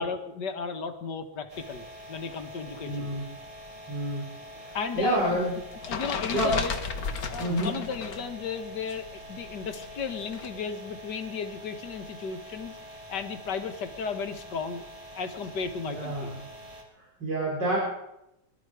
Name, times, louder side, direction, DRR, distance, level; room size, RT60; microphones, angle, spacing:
voice 1, 0.0-3.1 4.7-5.4 5.9-6.7 7.3-12.8 13.1-14.9 15.2-16.3, left 5 dB, 75° left, 7 dB, 2.0 m, -34 dB
sound 1, 1.5-16.8, equal, 20° right, 3.5 m, -45 dB
voice 2, 2.8-3.2 3.9-4.2 4.6-5.5 6.3-6.5 7.4-7.7 15.9-16.3 17.0-17.8, right 1 dB, 80° right, -4 dB, 4.7 m, -28 dB
sound 2, 5.0-8.3 8.6-10.5, left 5 dB, 60° left, 1.6 m, -35 dB
22.5 x 12.5 x 4.9 m, 0.84 s
omnidirectional pair, 1.9 m